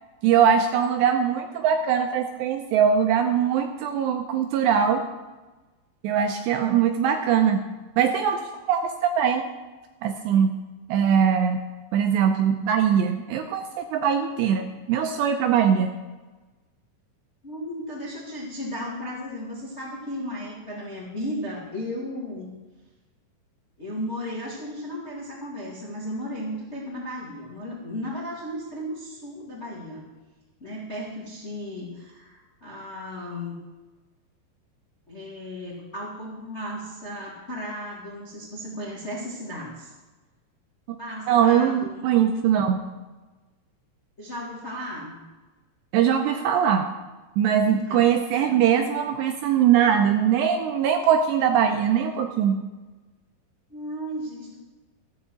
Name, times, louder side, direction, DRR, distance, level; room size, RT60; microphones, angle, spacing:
voice 1, 0.2-5.0 6.0-7.6 8.0-8.4 8.7-9.4 10.0-10.5 10.9-11.6 11.9-15.9 41.3-42.8 45.9-46.9 47.4-52.6, right 8 dB, 80° right, 5 dB, 2.6 m, -21 dB
voice 2, 17.4-22.6 23.8-30.1 30.6-33.6 35.1-39.9 41.0-42.0 44.2-45.2 47.6-48.0 53.7-54.5, equal, 35° left, -4 dB, 1.1 m, -35 dB
14.0 x 7.1 x 7.7 m, 1.2 s
omnidirectional pair, 5.5 m